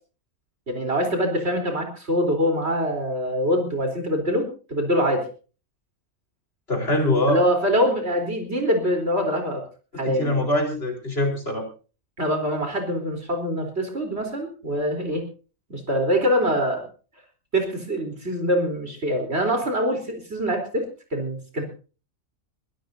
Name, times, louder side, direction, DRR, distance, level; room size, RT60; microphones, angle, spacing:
voice 1, 0.7-5.3 7.3-9.6 10.0-10.4 12.2-15.2 15.7-16.8 17.5-20.9 21.1-21.6, equal, 50° right, 4 dB, 4.2 m, -24 dB
voice 2, 6.7-7.4 9.9-11.7, left 1 dB, 45° left, 2 dB, 4.6 m, -23 dB
23.0 x 16.5 x 2.7 m, 0.36 s
omnidirectional pair, 1.5 m